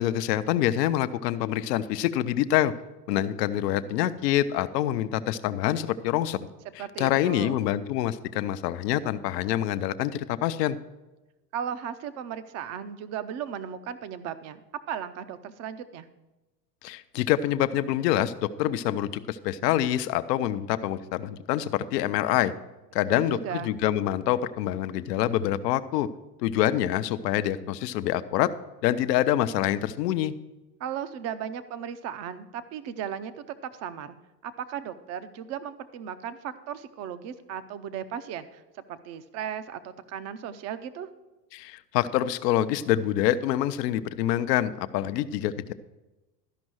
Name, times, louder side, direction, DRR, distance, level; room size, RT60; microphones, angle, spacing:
voice 1, 0.0-2.7 3.1-6.4 6.8-10.8 16.8-22.5 22.9-26.1 26.4-28.5 28.8-30.3 41.5-45.7, left 12 dB, 75° left, 12 dB, 0.7 m, -26 dB
voice 2, 6.8-7.6 11.5-14.6 14.9-16.1 23.1-23.7 30.8-34.2 34.4-38.6 38.9-41.1, right 9 dB, 35° right, 13 dB, 0.6 m, -36 dB
13.0 x 5.3 x 6.2 m, 1.1 s
supercardioid pair, 130°, 50 cm